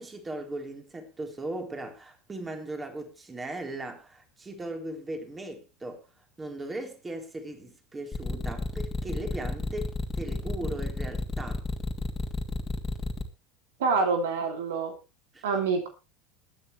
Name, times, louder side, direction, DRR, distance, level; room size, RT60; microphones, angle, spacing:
voice 1, 0.0-6.0 6.4-11.6 15.3-15.5, right 2 dB, 20° right, 3.8 m, -38 dB
sound 1, 8.1-13.2, left 2 dB, 25° left, 2.6 m, -31 dB
voice 2, 13.8-15.0 15.4-15.9, right 4 dB, 75° right, 2.7 m, -26 dB
22.0 x 9.1 x 3.2 m
hypercardioid pair, 85°, 0 cm